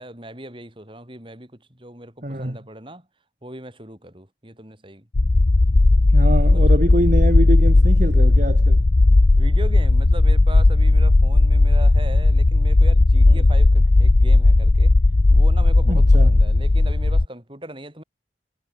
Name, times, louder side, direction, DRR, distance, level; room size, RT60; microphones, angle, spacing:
voice 1, 0.0-3.1 3.4-5.1 6.5-6.6 9.4-14.9 15.3-18.0, right 1 dB, 25° right, 4.1 m, -39 dB
voice 2, 2.2-2.6 6.1-8.9 13.3-13.5 15.9-16.4, right 1 dB, 45° right, 2.2 m, -25 dB
sound 1, 5.1-17.3, left 2 dB, 45° left, 0.7 m, -15 dB
head